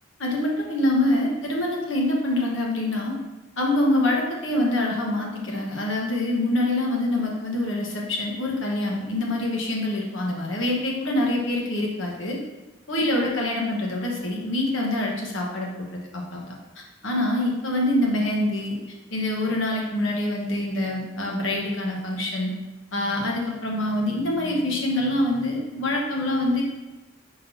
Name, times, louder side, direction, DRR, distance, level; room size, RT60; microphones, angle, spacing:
voice 1, 0.2-3.1 3.6-12.4 12.9-15.7 16.1-16.5 17.0-18.8 19.1-22.5 22.9-26.6, left 1 dB, 75° left, -1 dB, 1.3 m, -25 dB
9.2 x 3.9 x 2.8 m, 1.1 s
head